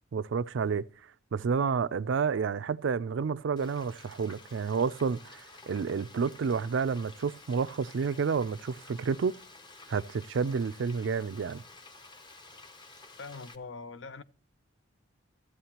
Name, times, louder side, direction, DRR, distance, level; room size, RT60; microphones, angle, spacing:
voice 1, 0.1-0.8 1.3-9.3 9.9-11.6, right 5 dB, 65° right, 0.4 m, -30 dB
Frying (food), 3.6-13.6, left 3 dB, 20° left, 0.7 m, -52 dB
voice 2, 13.2-14.2, left 4 dB, 60° left, 0.5 m, -42 dB
14.0 x 8.5 x 2.9 m
head